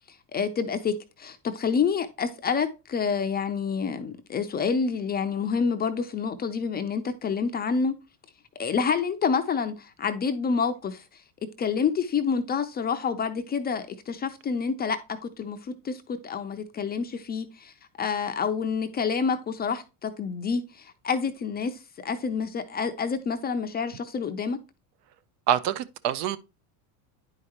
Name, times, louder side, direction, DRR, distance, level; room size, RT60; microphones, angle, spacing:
voice 1, 0.3-8.0 8.6-11.0 11.6-17.7 18.0-24.6, left 5 dB, 20° left, 0.4 m, -28 dB
voice 2, 25.5-26.4, right 10 dB, 75° right, 0.7 m, -25 dB
9.5 x 4.8 x 2.8 m
supercardioid pair, 115°, 47 cm